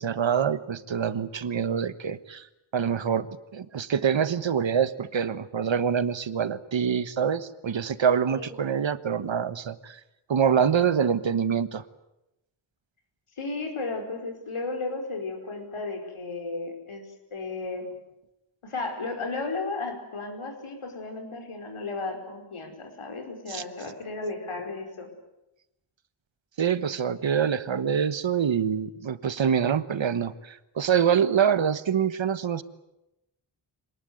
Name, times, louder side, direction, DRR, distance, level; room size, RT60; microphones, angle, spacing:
voice 1, 0.0-2.5 2.7-3.3 3.5-10.0 10.3-11.8 23.5-23.6 26.6-32.6, right 7 dB, 65° right, 14 dB, 1.3 m, -25 dB
voice 2, 13.4-17.0 17.3-17.9 18.6-25.1, left 3 dB, 90° left, 5 dB, 5.0 m, -34 dB
25.5 x 19.5 x 9.5 m, 0.91 s
wide cardioid pair, 110°, 48 cm